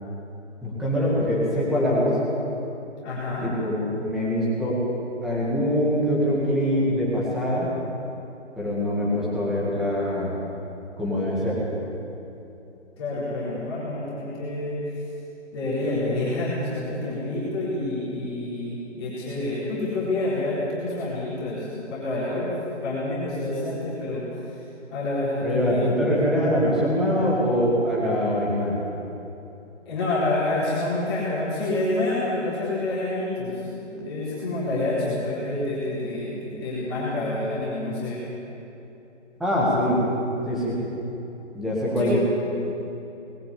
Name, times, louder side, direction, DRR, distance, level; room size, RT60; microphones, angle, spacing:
voice 1, 0.6-2.2 3.4-4.8 5.2-7.7 8.6-10.4 11.0-11.6 25.4-28.8 39.4-40.0 40.5-40.8 41.5-42.2, equal, ahead, -7 dB, 1.9 m, -23 dB
voice 2, 3.0-3.4 13.0-14.9 15.5-24.2 24.9-25.9 29.9-38.2 42.0-42.2, left 2 dB, 20° left, -9 dB, 4.0 m, -28 dB
20.0 x 15.5 x 8.5 m, 3.0 s
hypercardioid pair, 170°, 37 cm